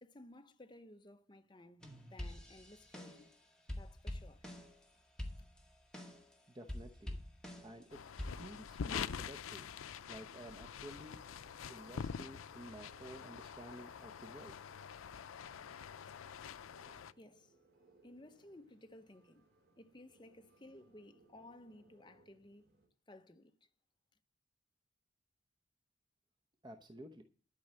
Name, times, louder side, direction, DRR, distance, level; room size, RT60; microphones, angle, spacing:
voice 1, 0.0-3.4 3.7-4.5 17.2-17.5 18.0-19.5 19.8-22.7 23.1-23.7, left 1 dB, 20° left, 0.9 m, -57 dB
sound 1, 1.8-3.3 3.7-4.8 5.2-6.3 6.7-7.8 8.2-9.0, left 1 dB, 5° left, 1.8 m, -46 dB
voice 2, 6.5-7.2 7.6-9.6 10.1-11.2 11.7-14.6 26.6-27.2, right 1 dB, 20° right, 0.8 m, -52 dB
sound 2, 7.9-17.1, left 7 dB, 90° left, 0.5 m, -46 dB
sound 3, 9.7-22.9, right 2 dB, 50° right, 3.0 m, -70 dB
12.0 x 5.5 x 7.6 m
head